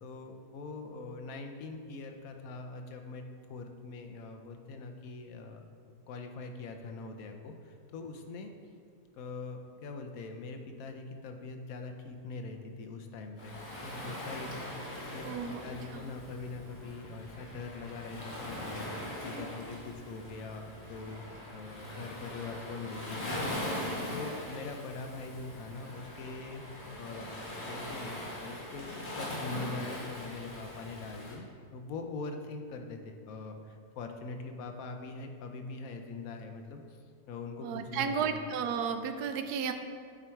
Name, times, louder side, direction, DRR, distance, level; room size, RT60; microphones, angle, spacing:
voice 1, 0.0-5.6 6.1-8.5 9.1-13.6 13.8-18.9 19.2-21.2 21.5-26.6 27.0-27.3 27.6-31.4 31.7-37.0 37.3-38.4, left 3 dB, 70° left, 5 dB, 1.0 m, -43 dB
Waves surf, 13.4-31.4, left 1 dB, 45° left, 1.7 m, -41 dB
voice 2, 15.2-16.1 37.6-39.7, right 6 dB, 90° right, 8 dB, 1.1 m, -33 dB
7.8 x 4.7 x 4.4 m, 2.2 s
omnidirectional pair, 1.6 m